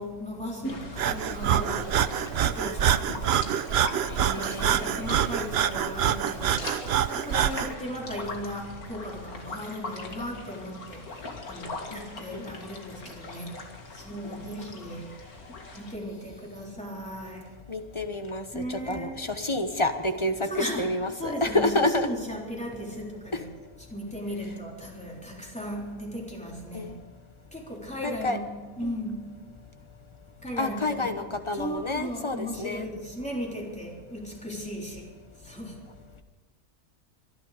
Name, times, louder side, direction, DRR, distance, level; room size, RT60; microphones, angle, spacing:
voice 1, 0.0-3.5 4.1-13.6 13.9-15.1 15.7-17.5 18.5-19.3 20.4-23.5 23.9-26.9 27.5-28.5 28.8-29.3 30.4-31.2 31.5-35.1 35.4-35.8, equal, 5° left, -2 dB, 3.6 m, -37 dB
sound 1, 0.6-16.0, left 2 dB, 85° left, 2.6 m, -41 dB
Breathing, 1.0-7.7, right 9 dB, 60° right, 0.7 m, -26 dB
voice 2, 4.1-5.3 7.7-7.8 11.9-12.5 14.4-14.8 17.7-22.1 23.3-23.4 26.7-27.0 28.0-28.4 28.8-28.9 30.6-32.9, left 2 dB, 25° left, 8 dB, 1.0 m, -29 dB
25.0 x 11.5 x 5.0 m, 1.4 s
omnidirectional pair, 1.5 m